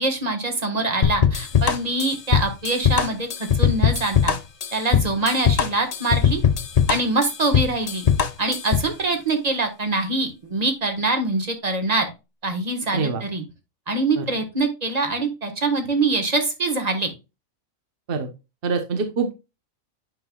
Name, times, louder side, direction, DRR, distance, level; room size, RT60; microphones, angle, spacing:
voice 1, 0.0-4.3 4.7-6.4 6.9-8.0 8.4-12.1 12.4-13.4 13.9-17.1, right 2 dB, 30° right, 6 dB, 1.5 m, -24 dB
sound 1, 1.0-8.9, left 7 dB, 60° left, 0.4 m, -20 dB
voice 2, 18.6-19.3, right 4 dB, 45° right, 6 dB, 1.1 m, -24 dB
9.0 x 5.6 x 2.3 m, 0.26 s
omnidirectional pair, 1.4 m